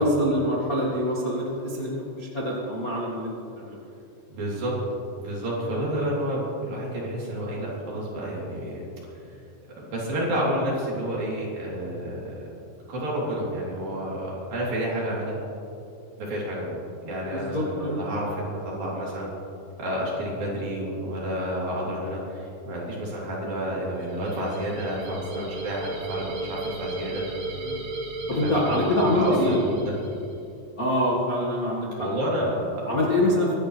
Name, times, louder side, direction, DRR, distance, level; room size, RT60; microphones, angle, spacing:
voice 1, 0.0-3.8 17.2-18.0 27.5-27.8 28.3-29.6 30.8-32.1 32.8-33.6, left 1 dB, 70° left, -6 dB, 0.8 m, -25 dB
voice 2, 4.3-4.8 5.2-8.8 9.8-12.3 12.9-15.4 16.2-16.7 17.0-19.3 19.8-27.2 28.3-29.9 32.0-32.8, equal, 50° right, -6 dB, 5.2 m, -30 dB
sound 1, 24.0-30.4, right 2 dB, 85° right, 4.9 m, -35 dB
24.5 x 12.5 x 3.4 m, 2.8 s
omnidirectional pair, 5.2 m